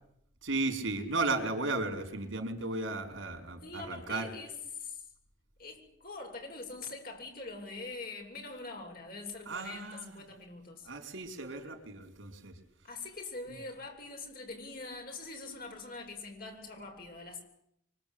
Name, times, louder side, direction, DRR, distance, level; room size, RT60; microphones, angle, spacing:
voice 1, 0.4-4.3 9.5-10.1 10.9-12.5, right 2 dB, 85° right, 5.0 m, -35 dB
voice 2, 3.6-5.0 5.6-10.9 12.8-17.4, left 3 dB, 50° left, 7.7 m, -43 dB
25.5 x 25.0 x 8.9 m
head